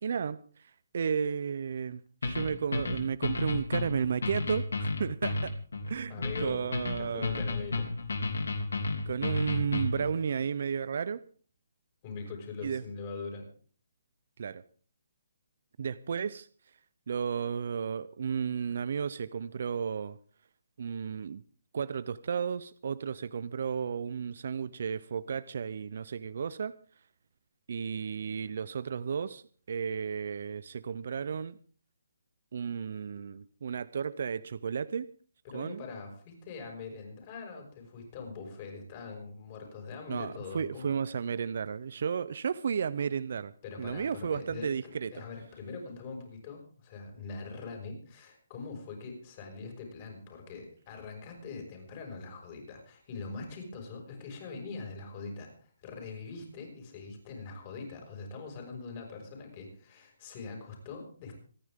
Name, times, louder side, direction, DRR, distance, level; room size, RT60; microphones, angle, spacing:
voice 1, 0.0-5.5 5.9-7.6 9.1-11.2 12.6-12.8 14.4-14.6 15.8-16.5 17.1-20.2 20.8-21.4 21.7-26.7 27.7-31.6 32.5-35.1 35.5-35.8 40.1-43.5 43.8-45.2, right 6 dB, 55° right, 16 dB, 0.6 m, -33 dB
sound 1, 2.2-10.1, left 3 dB, 90° left, 3.0 m, -32 dB
voice 2, 6.1-7.9 12.0-13.5 35.4-40.9 43.6-61.4, left 4 dB, 30° left, 2 dB, 5.8 m, -42 dB
26.0 x 10.0 x 3.7 m, 0.43 s
hypercardioid pair, 165°, 0 cm